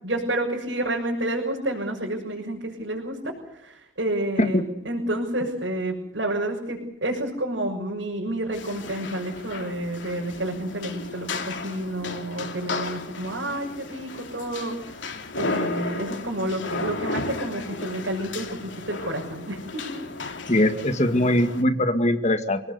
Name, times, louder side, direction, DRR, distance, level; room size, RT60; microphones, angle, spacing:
voice 1, 0.0-15.0 15.4-20.0, right 1 dB, 75° right, -2 dB, 6.6 m, -30 dB
sound 1, 8.5-21.6, left 3 dB, 80° left, 3.1 m, -34 dB
voice 2, 20.5-22.6, left 1 dB, 40° left, 8 dB, 2.1 m, -21 dB
29.0 x 18.5 x 8.2 m, 0.76 s
head